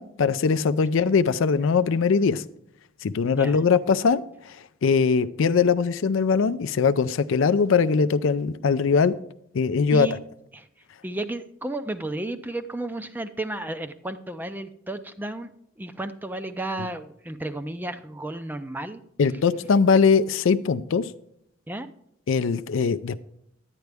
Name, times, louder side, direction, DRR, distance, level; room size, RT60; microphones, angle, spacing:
voice 1, 0.0-2.4 3.0-9.1 9.5-10.1 19.2-21.1 22.3-23.2, left 5 dB, 70° left, 14 dB, 0.4 m, -21 dB
voice 2, 11.0-15.5 15.8-19.0 21.7-21.9, right 2 dB, 10° right, 10 dB, 0.4 m, -33 dB
10.5 x 9.1 x 3.4 m, 0.74 s
head